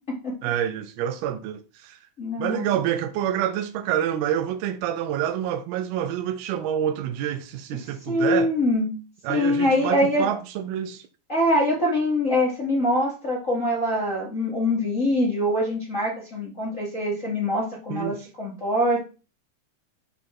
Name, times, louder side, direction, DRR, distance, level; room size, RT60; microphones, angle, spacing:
voice 1, 0.4-2.0 2.4-8.5 9.2-11.0 17.9-18.3, right 10 dB, 85° right, 2.6 m, -27 dB
voice 2, 2.2-2.7 7.8-8.9 9.3-10.3 11.3-19.0, left 1 dB, 30° left, 1.7 m, -24 dB
7.2 x 4.2 x 6.0 m
omnidirectional pair, 4.3 m